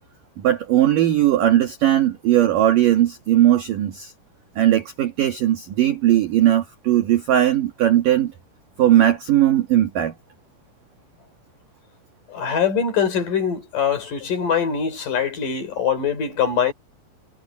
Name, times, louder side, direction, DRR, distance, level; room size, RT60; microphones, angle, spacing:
voice 1, 0.4-4.1 4.6-8.3 8.8-10.1, right 12 dB, 70° right, 2.0 m, -18 dB
voice 2, 12.3-16.7, left 7 dB, 45° left, 4.9 m, -23 dB
omnidirectional pair, 6.0 m